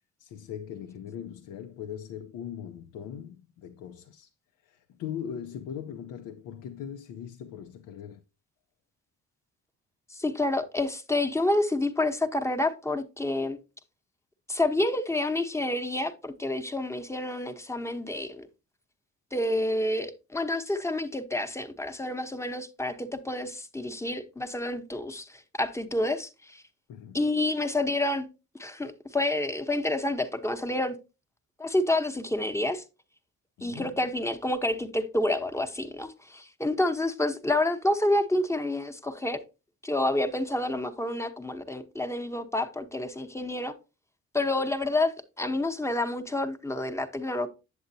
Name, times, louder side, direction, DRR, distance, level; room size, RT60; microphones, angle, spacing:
voice 1, 0.2-4.3 4.6-8.2 26.9-27.2 33.6-34.0, left 8 dB, 80° left, 0.7 m, -40 dB
voice 2, 10.1-13.6 14.5-18.5 19.3-26.6 27.1-28.3 28.6-31.0 31.6-32.8 33.6-39.4 39.8-43.7 44.3-47.5, left 1 dB, 10° left, 0.9 m, -28 dB
8.0 x 7.8 x 2.7 m
cardioid pair, 90°, 30 cm